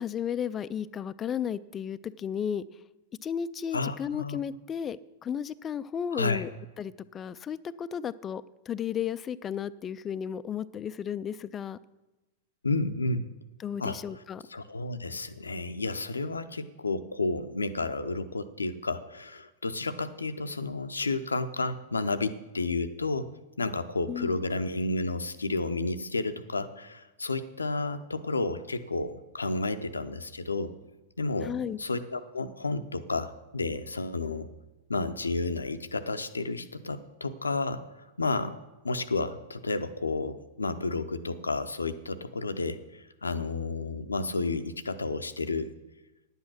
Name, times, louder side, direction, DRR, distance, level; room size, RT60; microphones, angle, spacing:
voice 1, 0.0-2.6 3.2-6.5 6.8-11.8 13.6-14.4 24.1-24.4 31.4-31.8, left 8 dB, 25° left, 15 dB, 0.4 m, -34 dB
voice 2, 3.7-4.4 6.1-6.4 12.6-13.3 13.8-14.0 14.5-23.3 23.6-30.7 31.2-34.5 34.9-38.6 38.8-45.7, left 3 dB, 80° left, 12 dB, 0.6 m, -31 dB
10.0 x 8.1 x 6.1 m, 1.1 s
figure-of-eight pair, 95°, 0 cm